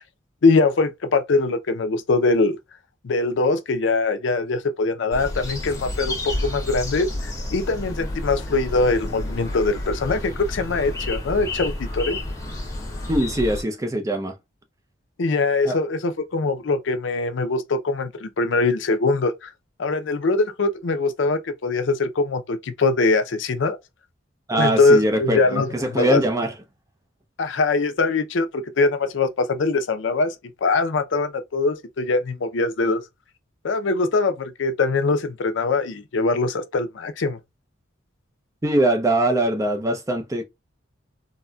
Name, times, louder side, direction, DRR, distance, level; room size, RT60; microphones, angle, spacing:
voice 1, 0.4-2.6 3.0-12.2 15.2-19.5 19.8-23.8 24.6-26.2 27.4-30.3 30.6-33.0 33.6-37.4, left 3 dB, 75° left, 0.5 m, -22 dB
sound 1, 5.1-13.6, left 1 dB, 15° left, 0.8 m, -30 dB
voice 2, 13.1-14.3 15.7-15.8 24.5-26.5 38.6-40.4, right 1 dB, 15° right, 0.4 m, -22 dB
3.9 x 2.1 x 2.2 m
head